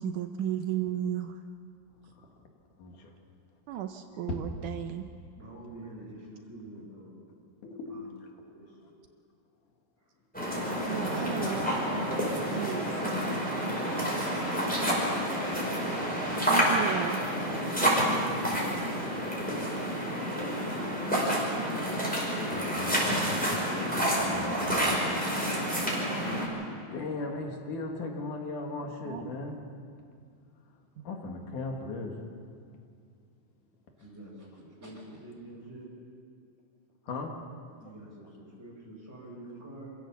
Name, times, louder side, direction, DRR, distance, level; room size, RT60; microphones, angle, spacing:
voice 1, 0.0-1.3 3.7-5.0 10.9-11.7 12.5-12.9 16.5-17.2 29.1-29.3, right 10 dB, 75° right, 6 dB, 2.2 m, -33 dB
voice 2, 2.8-3.1 4.1-4.4 7.6-8.0 22.5-23.4 23.8-25.2 26.9-29.6 31.0-32.2 37.1-37.4, left 3 dB, 65° left, 2 dB, 3.4 m, -38 dB
voice 3, 5.4-7.3 7.9-8.0 8.4-8.9 34.0-35.9 37.8-39.9, right 1 dB, 20° right, -7 dB, 4.4 m, -47 dB
sound 1, 10.3-26.5, equal, ahead, 5.0 m, -29 dB
26.0 x 16.0 x 7.2 m, 2.2 s
omnidirectional pair, 4.0 m